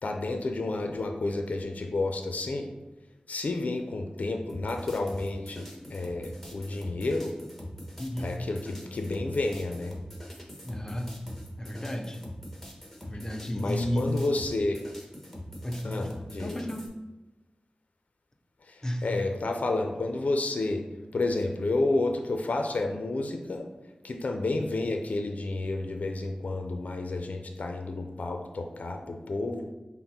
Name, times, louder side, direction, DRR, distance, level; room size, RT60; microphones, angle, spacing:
voice 1, 0.0-2.7 3.3-7.3 8.2-10.0 13.5-14.8 15.8-16.6 18.6-20.8 21.1-23.7 24.0-29.7, left 2 dB, 70° left, 4 dB, 0.4 m, -30 dB
sound 1, 4.5-16.9, equal, 5° left, 1.2 m, -43 dB
voice 2, 8.0-8.3 10.6-11.1 11.6-12.2 13.0-14.1 15.6-16.1 16.4-16.9 18.8-19.1 24.6-24.8, equal, 25° left, 4 dB, 0.6 m, -33 dB
5.7 x 2.1 x 4.1 m, 1.1 s
cardioid pair, 50°, 3 cm